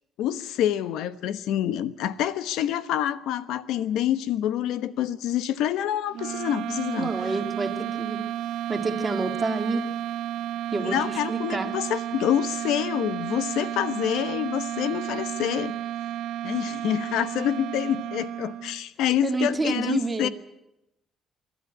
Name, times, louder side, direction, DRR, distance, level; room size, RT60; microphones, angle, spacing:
voice 1, 0.2-7.1 10.8-15.8 16.4-20.3, left 11 dB, 90° left, 14 dB, 1.0 m, -27 dB
sound 1, 6.1-18.8, right 11 dB, 70° right, 0.9 m, -32 dB
voice 2, 7.0-8.2 8.7-9.9 10.7-11.7 19.2-20.3, right 3 dB, 15° right, 6 dB, 1.8 m, -28 dB
28.5 x 13.0 x 9.8 m, 0.88 s
cardioid pair, 165°, 0 cm